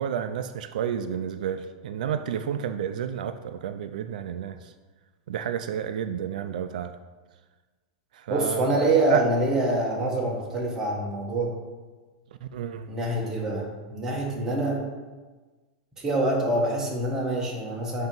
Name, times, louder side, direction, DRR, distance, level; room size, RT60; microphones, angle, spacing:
voice 1, 0.0-4.7 5.3-7.0 8.1-8.7 9.1-9.2 12.4-12.9, right 8 dB, 85° right, 9 dB, 0.4 m, -31 dB
voice 2, 8.3-11.6 12.9-14.8 16.0-18.1, right 2 dB, 10° right, -3 dB, 1.2 m, -25 dB
8.0 x 2.9 x 5.3 m, 1.3 s
supercardioid pair, 170°, 4 cm